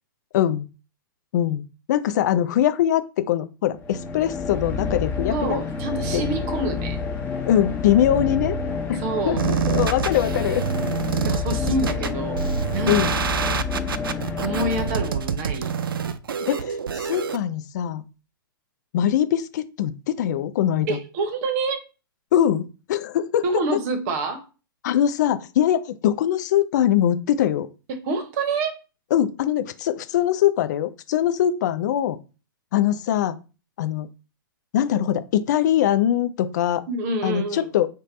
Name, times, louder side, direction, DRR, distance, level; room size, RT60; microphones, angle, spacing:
voice 1, 0.3-0.6 1.3-1.6 1.9-5.6 6.1-6.2 7.5-8.5 8.9-10.6 12.9-13.1 16.5-18.0 18.9-21.0 22.3-23.4 24.8-27.7 29.1-32.2 32.7-33.4 33.8-34.1 34.7-36.8 37.2-37.9, left 11 dB, 50° left, 0.4 m, -22 dB
sound 1, 3.8-15.6, left 4 dB, 15° left, 1.0 m, -28 dB
voice 2, 5.3-7.0 9.0-9.4 11.2-12.4 12.7-13.0 14.4-15.7 20.9-21.8 23.4-24.4 27.9-28.8 36.9-37.7, right 2 dB, 45° right, 0.8 m, -27 dB
sound 2, 9.4-17.4, right 7 dB, 75° right, 0.4 m, -27 dB
3.2 x 2.2 x 3.8 m
figure-of-eight pair, 110°, 12 cm